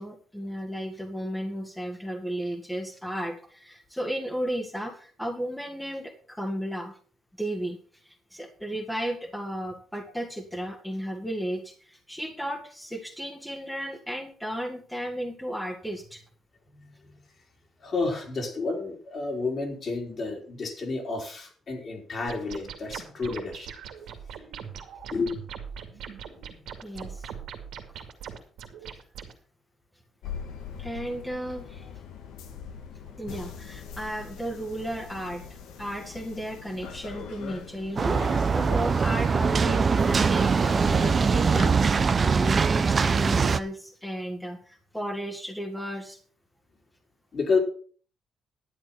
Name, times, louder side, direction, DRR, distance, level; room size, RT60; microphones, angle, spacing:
voice 1, 0.0-7.0 7.4-7.8 8.0-16.2 26.8-27.3 30.8-31.9 33.2-35.4 35.8-46.2, equal, 5° left, 2 dB, 1.9 m, -34 dB
voice 2, 16.7-17.1 17.8-23.7 25.1-25.3 47.3-47.6, left 4 dB, 45° left, 1 dB, 4.1 m, -30 dB
sound 1, 22.3-29.3, right 7 dB, 85° right, 2.3 m, -41 dB
sound 2, 30.2-42.1, left 7 dB, 85° left, 1.7 m, -41 dB
sound 3, 38.0-43.6, right 5 dB, 40° right, 0.7 m, -22 dB
11.5 x 8.5 x 5.6 m, 0.43 s
cardioid pair, 90°, 0 cm